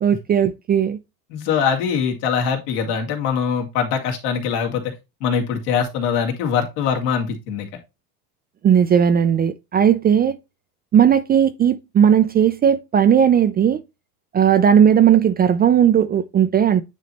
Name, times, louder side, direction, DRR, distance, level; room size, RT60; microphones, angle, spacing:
voice 1, 0.0-1.0 8.6-10.4 10.9-13.8 14.3-16.8, right 8 dB, 20° right, 0.4 m, -16 dB
voice 2, 1.3-4.9 5.2-7.7, left 7 dB, 75° left, 2.3 m, -22 dB
9.4 x 3.2 x 4.1 m
supercardioid pair, 105°, 46 cm